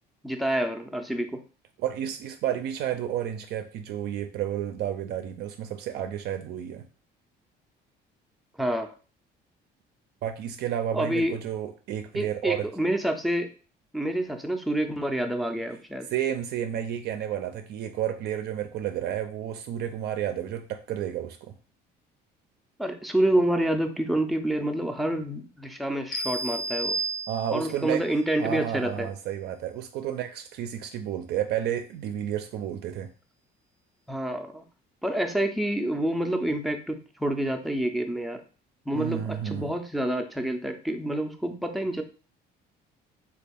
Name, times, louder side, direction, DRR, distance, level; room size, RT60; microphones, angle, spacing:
voice 1, 0.2-1.4 8.6-8.9 10.9-11.4 12.1-13.5 13.9-16.1 22.8-27.0 27.5-29.1 34.1-34.6 35.0-38.4 38.9-42.0, right 1 dB, ahead, 4 dB, 0.4 m, -28 dB
voice 2, 1.8-6.9 10.2-12.7 16.1-21.6 27.3-28.1 28.4-33.1 38.9-39.7, right 10 dB, 65° right, 7 dB, 0.4 m, -31 dB
sound 1, 26.1-27.8, right 2 dB, 60° left, 0.7 m, -31 dB
3.3 x 2.3 x 3.4 m, 0.38 s
cardioid pair, 125°, 18 cm